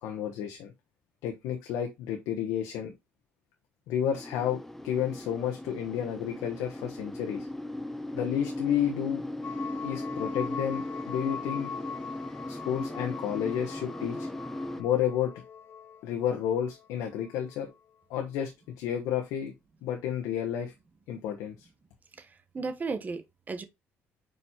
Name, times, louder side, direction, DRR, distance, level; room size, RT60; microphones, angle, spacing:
voice 1, 0.0-0.7 1.2-2.9 3.9-4.6 4.8-7.5 8.1-9.2 9.8-11.7 12.5-14.3 14.8-15.3 16.0-17.7 18.1-18.5 18.8-19.5 19.8-20.7 21.1-21.7, left 9 dB, 90° left, 1.1 m, -31 dB
sound 1, 4.1-14.8, left 1 dB, 5° left, 0.8 m, -38 dB
sound 2, 9.4-17.6, left 6 dB, 40° left, 1.0 m, -42 dB
voice 2, 22.2-23.6, right 4 dB, 35° right, 1.1 m, -35 dB
5.3 x 4.5 x 4.3 m
cardioid pair, 100°, 5 cm